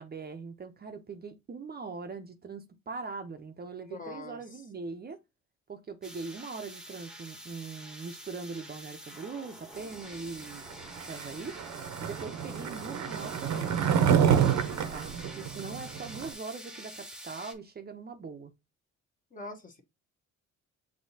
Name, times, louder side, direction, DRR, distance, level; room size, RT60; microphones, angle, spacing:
voice 1, 0.0-5.2 5.7-10.7 11.1-11.6 12.0-14.6 14.9-18.5, right 4 dB, 35° right, 0.6 m, -41 dB
voice 2, 3.9-4.4 19.3-19.8, left 2 dB, 25° left, 1.0 m, -42 dB
sound 1, 6.0-17.5, equal, ahead, 0.9 m, -47 dB
Skateboard, 10.9-16.3, right 8 dB, 65° right, 0.8 m, -28 dB
6.3 x 2.8 x 2.6 m
cardioid pair, 90°, 30 cm